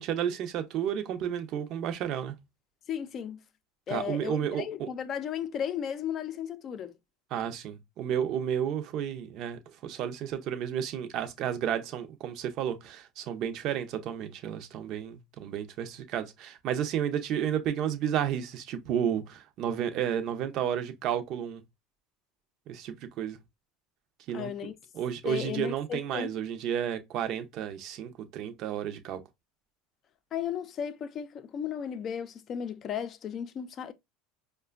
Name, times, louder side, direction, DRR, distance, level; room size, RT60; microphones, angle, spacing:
voice 1, 0.0-2.4 3.9-4.9 7.3-21.6 22.7-23.4 24.3-24.7 24.9-29.2, right 9 dB, 55° right, 0.6 m, -32 dB
voice 2, 2.9-3.4 3.9-6.9 24.3-24.7 25.2-26.3 30.3-33.9, left 8 dB, 40° left, 0.5 m, -35 dB
4.8 x 2.2 x 2.3 m
supercardioid pair, 100°, 0 cm